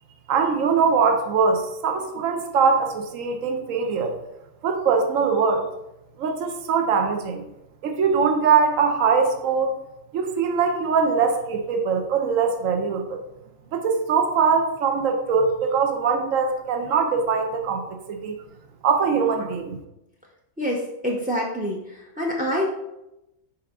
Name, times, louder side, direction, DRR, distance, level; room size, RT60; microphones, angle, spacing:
voice 1, 0.3-4.2 4.6-5.6 6.2-7.4 7.8-9.8 10.1-13.2 13.7-17.8 18.1-18.4 18.8-19.8, right 5 dB, 75° right, 4 dB, 1.1 m, -22 dB
voice 2, 20.6-22.7, equal, 10° right, -1 dB, 0.4 m, -26 dB
6.6 x 4.9 x 3.6 m, 0.90 s
omnidirectional pair, 1.4 m